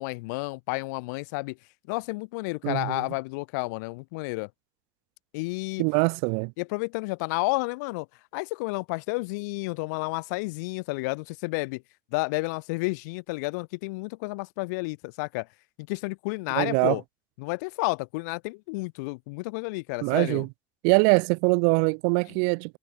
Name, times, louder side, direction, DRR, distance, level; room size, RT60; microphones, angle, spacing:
voice 1, 0.0-1.6 1.9-4.5 5.3-5.8 6.6-8.1 8.3-11.8 12.1-15.5 15.8-17.0 17.4-20.4, left 27 dB, 85° left, 2.7 m, -31 dB
voice 2, 2.6-3.0 5.8-6.5 16.5-17.0 20.0-20.5 20.8-22.8, right 40 dB or more, 75° right, 0.7 m, -23 dB
supercardioid pair, 125°, 9 cm